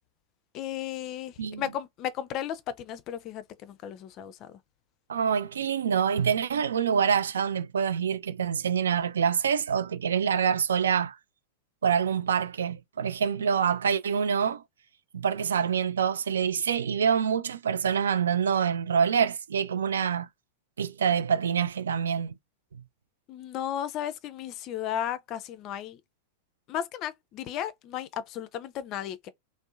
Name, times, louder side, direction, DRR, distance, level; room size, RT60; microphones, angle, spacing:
voice 1, 0.5-4.6 23.3-26.0 26.7-29.3, left 10 dB, 35° left, 0.4 m, -35 dB
voice 2, 5.1-11.2 11.8-14.6 15.1-20.3 20.8-22.3, right 7 dB, 65° right, 0.3 m, -26 dB
2.6 x 2.0 x 2.4 m
figure-of-eight pair, 90°, 0 cm